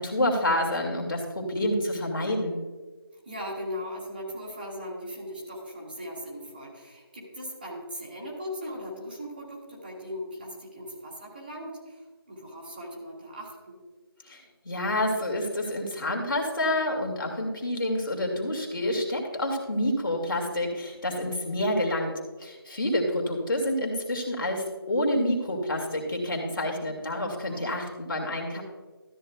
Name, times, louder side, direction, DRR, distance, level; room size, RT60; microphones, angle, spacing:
voice 1, 0.0-2.6 14.3-22.1 22.4-28.6, left 1 dB, 60° left, 0 dB, 2.3 m, -28 dB
voice 2, 3.2-13.8 27.5-27.7 28.5-28.6, equal, 25° right, -3 dB, 1.6 m, -39 dB
13.0 x 8.7 x 2.3 m, 1.3 s
figure-of-eight pair, 170°, 13 cm